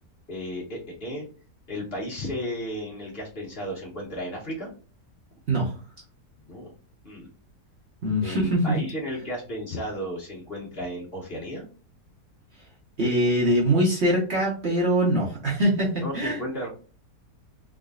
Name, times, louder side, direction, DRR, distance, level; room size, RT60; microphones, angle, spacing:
voice 1, 0.3-1.3 1.7-4.7 6.4-6.7 7.0-7.3 8.2-11.7 16.0-16.7, equal, 35° left, -4 dB, 1.7 m, -34 dB
voice 2, 5.5-5.8 8.0-8.8 13.0-16.4, right 1 dB, 45° right, -3 dB, 1.3 m, -23 dB
3.7 x 3.7 x 2.4 m, 0.39 s
omnidirectional pair, 1.8 m